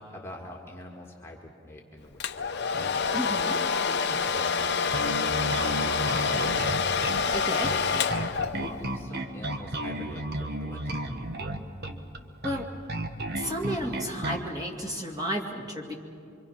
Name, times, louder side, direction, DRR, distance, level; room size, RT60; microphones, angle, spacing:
voice 1, 0.0-6.6 7.5-8.1 8.5-11.0, left 1 dB, 10° left, -2 dB, 1.6 m, -45 dB
Domestic sounds home sounds, 2.2-8.9, left 5 dB, 50° left, 0.7 m, -27 dB
voice 2, 3.1-3.6 7.3-7.7 12.4-12.6 13.4-16.0, equal, 20° right, -1 dB, 2.2 m, -32 dB
Bass guitar, 4.9-14.5, right 1 dB, 50° right, 1.2 m, -33 dB
25.5 x 24.5 x 5.8 m, 2.5 s
head